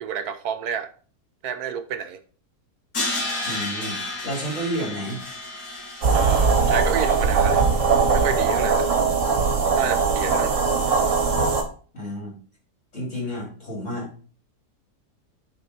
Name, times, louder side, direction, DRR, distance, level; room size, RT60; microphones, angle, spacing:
voice 1, 0.0-0.9 1.4-2.2 6.1-7.6 8.1-8.9 9.4-10.6, right 8 dB, 70° right, 9 dB, 1.3 m, -30 dB
Crash cymbal, 2.9-8.0, left 2 dB, 70° left, 2.2 m, -32 dB
voice 2, 3.4-5.2 10.6-10.7 11.9-12.4 12.9-14.1, equal, 45° left, -3 dB, 4.5 m, -31 dB
sound 1, 6.0-11.6, right 5 dB, 50° right, 1.5 m, -20 dB
9.6 x 4.3 x 4.3 m, 0.41 s
omnidirectional pair, 1.7 m